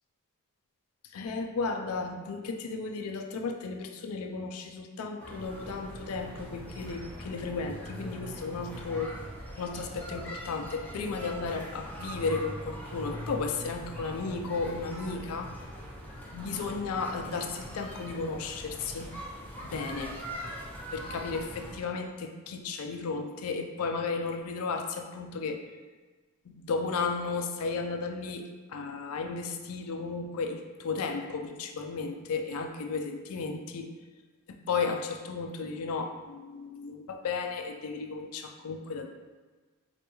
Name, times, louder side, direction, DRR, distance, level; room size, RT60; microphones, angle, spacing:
voice 1, 1.1-9.1 9.6-15.5 16.3-19.2 19.6-20.2 20.9-25.6 26.5-33.9 34.7-39.1, left 4 dB, 70° left, 4 dB, 0.4 m, -34 dB
sound 1, 5.2-21.8, equal, 10° left, 0.5 m, -42 dB
4.0 x 2.3 x 2.9 m, 1.3 s
head